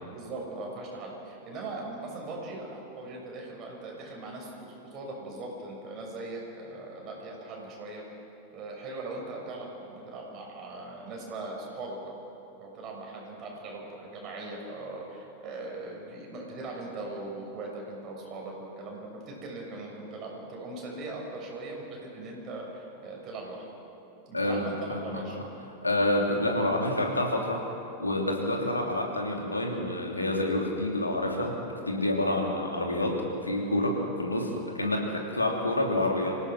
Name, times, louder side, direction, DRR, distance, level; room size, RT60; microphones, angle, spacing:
voice 1, 0.1-8.0 8.5-12.2 12.6-23.6 24.3-25.4, right 2 dB, 35° right, -1 dB, 6.7 m, -40 dB
voice 2, 24.3-25.2 25.8-27.6 28.0-36.4, left 1 dB, 80° left, 0 dB, 3.2 m, -28 dB
26.0 x 17.0 x 6.2 m, 2.8 s
figure-of-eight pair, 90°, 0 cm